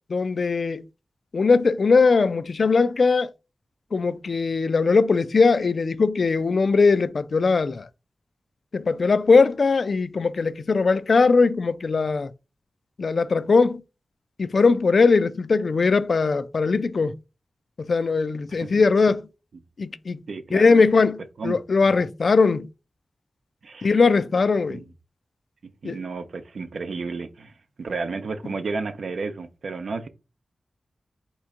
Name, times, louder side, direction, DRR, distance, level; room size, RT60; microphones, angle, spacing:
voice 1, 0.1-0.8 1.3-3.3 3.9-7.9 8.7-12.3 13.0-13.8 14.4-17.1 17.8-19.2 19.8-20.2 20.5-22.7 23.8-24.8 25.8-26.0, left 4 dB, 65° left, 0.4 m, -20 dB
voice 2, 20.3-20.8 21.4-22.0 23.6-24.0 24.7-24.9 25.8-30.1, right 4 dB, 80° right, 0.6 m, -32 dB
4.3 x 3.0 x 3.6 m
wide cardioid pair, 75°, 0 cm